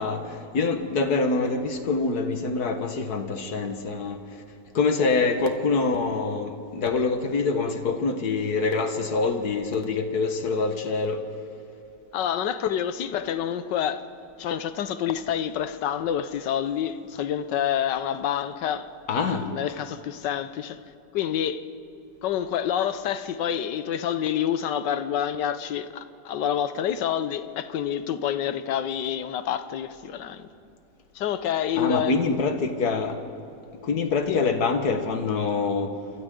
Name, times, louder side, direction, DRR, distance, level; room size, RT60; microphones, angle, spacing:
voice 1, 0.0-4.2 4.7-11.3 19.1-19.5 31.8-33.2 33.8-36.0, left 4 dB, 65° left, 1.9 m, -25 dB
voice 2, 12.1-14.1 14.4-18.9 19.2-20.8 21.1-21.6 22.2-30.5 31.1-32.2 34.2-34.5, left 9 dB, 80° left, 1.5 m, -28 dB
28.5 x 26.0 x 3.8 m
omnidirectional pair, 1.9 m